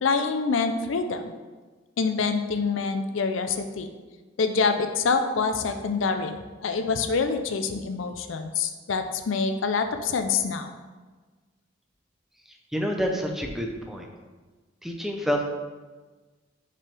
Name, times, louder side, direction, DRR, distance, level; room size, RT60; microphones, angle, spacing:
voice 1, 0.0-1.3 2.0-3.9 4.4-6.4 6.6-10.7, left 4 dB, 85° left, 7 dB, 0.5 m, -26 dB
voice 2, 12.5-14.1 14.8-15.4, equal, ahead, 2 dB, 0.6 m, -28 dB
5.5 x 5.2 x 3.4 m, 1.3 s
head